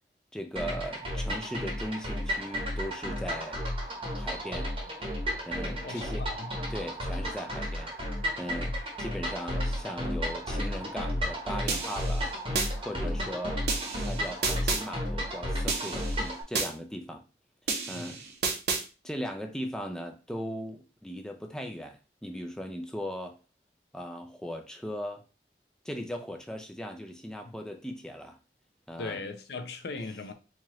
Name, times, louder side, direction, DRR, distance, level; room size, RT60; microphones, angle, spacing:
voice 1, 0.3-3.6 4.2-4.7 5.5-6.3 6.7-7.9 8.4-12.3 12.8-13.6 14.0-17.2 17.9-18.2 19.0-23.4 23.9-25.2 25.8-28.4 28.9-29.2, equal, 5° left, 0.4 m, -38 dB
sound 1, 0.6-16.4, equal, 30° right, 0.9 m, -33 dB
voice 2, 5.8-6.5 17.9-18.1 29.0-30.3, left 3 dB, 70° left, 0.6 m, -38 dB
sound 2, 11.7-12.7 13.7-14.8 15.7-16.7 17.7-18.8, right 4 dB, 65° right, 0.8 m, -31 dB
4.4 x 2.5 x 3.0 m
head